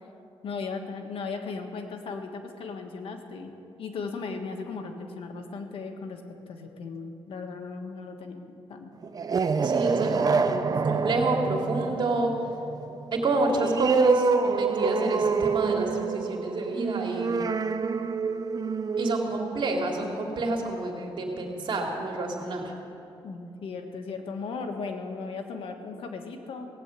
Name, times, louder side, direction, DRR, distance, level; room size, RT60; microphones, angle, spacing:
voice 1, 0.4-3.5 3.8-6.2 6.5-8.9 10.2-10.8 23.2-26.7, left 4 dB, 75° left, 4 dB, 1.5 m, -37 dB
sound 1, 9.0-20.2, right 5 dB, 40° right, 0.7 m, -27 dB
voice 2, 9.6-10.5 10.8-12.3 13.1-17.4 19.0-22.7, right 2 dB, 60° right, 0 dB, 2.7 m, -28 dB
17.0 x 8.1 x 9.0 m, 2.8 s
cardioid pair, 85°, 9 cm